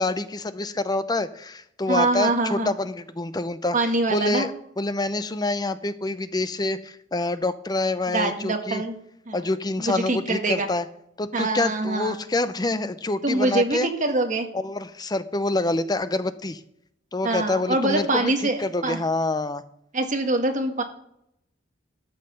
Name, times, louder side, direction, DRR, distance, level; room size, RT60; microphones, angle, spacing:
voice 1, 0.0-3.8 4.1-4.5 4.8-8.8 9.3-10.9 11.2-13.9 14.5-16.6 17.1-18.3 18.6-19.6, left 2 dB, 20° left, 12 dB, 0.6 m, -26 dB
voice 2, 1.9-2.7 3.7-4.5 8.1-9.0 9.3-9.4 9.8-10.7 11.3-12.2 13.2-14.5 17.2-19.0 19.9-20.8, right 2 dB, 45° right, 5 dB, 1.5 m, -24 dB
12.5 x 5.8 x 6.7 m, 0.76 s
head